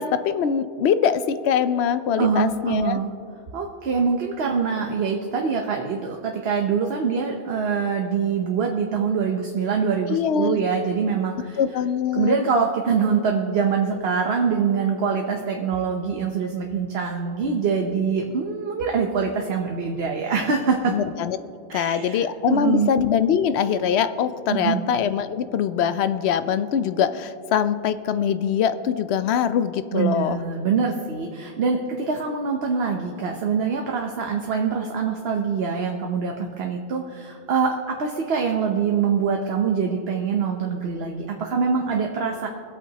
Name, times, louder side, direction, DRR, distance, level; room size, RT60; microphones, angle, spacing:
voice 1, 0.0-3.0 10.1-10.6 11.6-12.3 20.9-21.4 21.7-30.4, left 8 dB, 75° left, 12 dB, 0.8 m, -23 dB
voice 2, 2.2-3.1 3.5-11.6 12.1-20.9 21.7-22.9 24.5-24.8 29.9-42.5, right 5 dB, 65° right, 2 dB, 1.0 m, -24 dB
22.0 x 8.3 x 2.9 m, 2.4 s
omnidirectional pair, 1.1 m